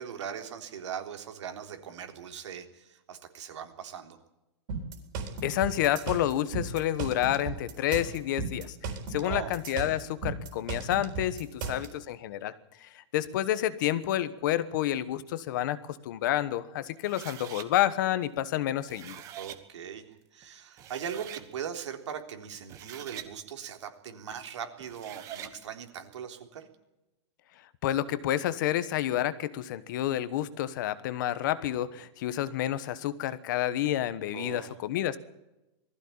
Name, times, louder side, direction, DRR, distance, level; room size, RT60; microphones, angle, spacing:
voice 1, 0.0-4.2 9.2-9.5 10.8-10.9 11.6-11.9 19.4-20.1 20.3-26.7 34.3-34.7, right 8 dB, 85° right, 5 dB, 3.6 m, -40 dB
sound 1, 4.7-11.9, right 4 dB, 45° right, 4.0 m, -35 dB
voice 2, 5.4-8.8 9.1-12.5 12.8-19.2 27.8-35.2, left 12 dB, 45° left, 15 dB, 1.2 m, -29 dB
sound 2, 17.0-17.7 18.7-19.6 20.4-20.5 20.8-21.5 22.5-23.3 24.8-25.6, right 11 dB, 20° right, 1.2 m, -44 dB
20.5 x 15.0 x 8.7 m, 0.96 s
supercardioid pair, 175°, 15 cm